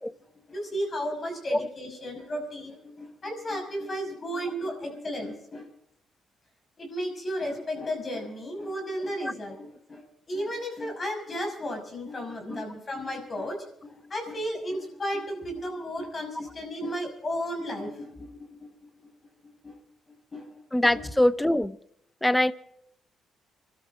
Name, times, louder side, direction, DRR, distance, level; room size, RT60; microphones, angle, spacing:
voice 1, 0.5-5.7 6.8-10.0 10.3-18.7 19.0-19.1 19.4-19.8 20.3-20.6 20.9-21.1, equal, 35° left, 6.0 m, -34 dB
voice 2, 20.7-21.8 22.2-22.5, left 1 dB, 10° left, 0.8 m, -23 dB
26.0 x 12.5 x 3.8 m
cardioid pair, 90°, 0 cm